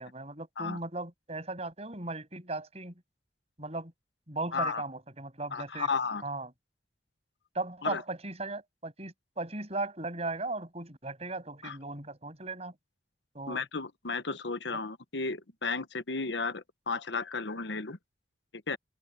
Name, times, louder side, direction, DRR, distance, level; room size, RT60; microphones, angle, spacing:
voice 1, 0.0-3.0 3.6-3.9 4.3-5.9 6.2-6.5 7.5-12.8 13.3-13.6, right 2 dB, 35° right, 7.5 m, -37 dB
voice 2, 5.5-6.2 7.8-8.0 11.6-11.8 13.5-18.0 18.7-18.8, left 4 dB, 90° left, 1.2 m, -33 dB
open air
head